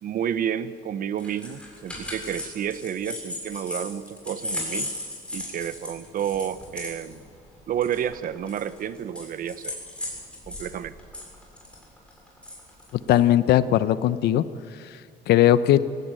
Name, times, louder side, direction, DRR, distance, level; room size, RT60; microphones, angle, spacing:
voice 1, 0.0-4.9 5.3-7.3 7.7-9.8 10.5-10.9, right 9 dB, 55° right, 14 dB, 1.0 m, -30 dB
sound 1, 1.2-10.7 11.0-13.2, left 1 dB, 5° left, 7.2 m, -36 dB
voice 2, 13.1-14.5 14.8-15.0 15.3-15.8, left 12 dB, 75° left, 14 dB, 0.9 m, -19 dB
18.5 x 17.0 x 9.1 m, 2.3 s
cardioid pair, 110°, 17 cm